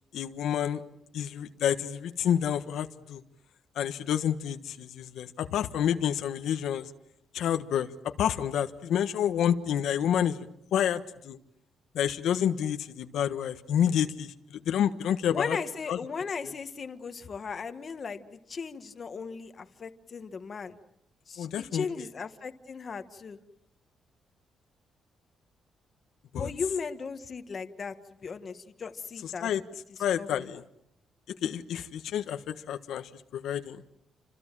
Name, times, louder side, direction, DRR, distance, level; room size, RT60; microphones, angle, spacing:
voice 1, 0.1-0.8 1.1-3.2 3.7-6.9 7.3-10.5 10.7-11.4 11.9-15.6 15.9-16.0 21.4-21.9 26.3-26.5 29.2-29.6 30.0-30.6 31.4-33.8, left 9 dB, 75° left, 8 dB, 1.4 m, -29 dB
voice 2, 15.3-20.7 21.3-23.4 26.4-27.9 28.2-29.5 30.2-30.5, left 5 dB, 35° left, 8 dB, 1.5 m, -36 dB
29.5 x 26.0 x 7.5 m, 0.79 s
cardioid pair, 160°, 0 cm